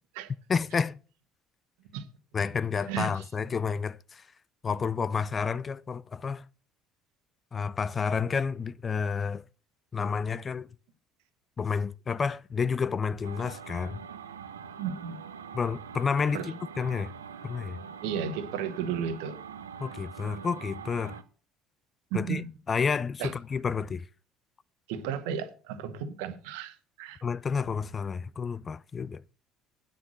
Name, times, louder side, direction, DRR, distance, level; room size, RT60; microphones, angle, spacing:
voice 1, 0.5-1.0 2.3-4.3 4.6-6.5 7.5-9.4 9.9-10.7 11.6-14.0 15.5-17.1 17.4-17.8 19.8-21.2 22.1-22.4 22.7-24.1 27.2-29.2, left 5 dB, 35° left, 0.4 m, -30 dB
voice 2, 2.9-3.2 14.8-15.2 16.3-16.5 18.0-19.4 22.1-22.5 23.2-23.3 24.9-27.2, right 7 dB, 70° right, 1.5 m, -34 dB
sound 1, 13.2-21.2, right 7 dB, 85° right, 0.7 m, -44 dB
9.3 x 6.7 x 6.3 m
figure-of-eight pair, 60°, 0 cm